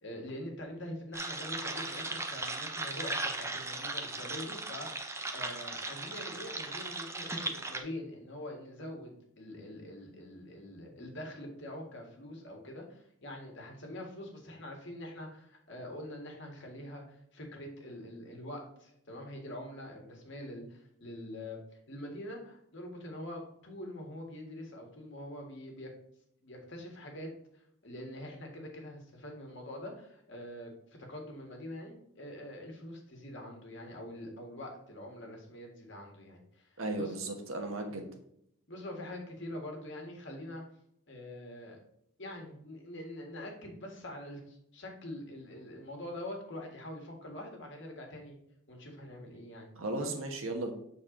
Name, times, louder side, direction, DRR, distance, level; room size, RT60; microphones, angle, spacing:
voice 1, 0.0-21.6 21.9-25.9 26.4-37.2 37.9-38.0 38.7-40.6 41.1-41.8 42.2-48.4 48.7-49.7 49.9-50.1, left 1 dB, 55° left, 1 dB, 1.7 m, -44 dB
sound 1, 1.1-7.8, right 2 dB, 15° right, 0.5 m, -37 dB
voice 2, 36.8-38.1 49.8-50.7, right 2 dB, 75° right, 4 dB, 1.2 m, -35 dB
7.5 x 4.1 x 3.8 m, 0.73 s
head